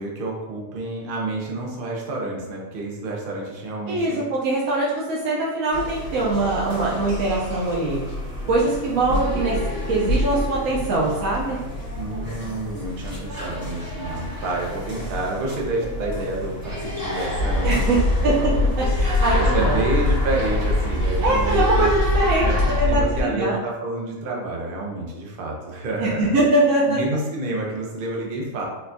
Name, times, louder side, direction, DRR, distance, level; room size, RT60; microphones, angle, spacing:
voice 1, 0.0-4.2 12.0-18.0 18.4-18.6 19.3-21.9 22.4-22.6 22.9-26.4 26.9-28.6, right 2 dB, 50° right, -1 dB, 0.7 m, -29 dB
voice 2, 3.9-8.0 8.5-9.6 9.9-11.6 17.6-18.5 18.8-19.8 21.2-22.5 22.8-23.6 26.0-27.0, right 2 dB, 85° right, -5 dB, 1.0 m, -22 dB
sound 1, 5.7-22.8, equal, 15° left, 1.0 m, -30 dB
sound 2, 17.3-23.2, left 2 dB, 60° left, 1.0 m, -22 dB
4.1 x 2.3 x 2.6 m, 1.1 s
omnidirectional pair, 1.4 m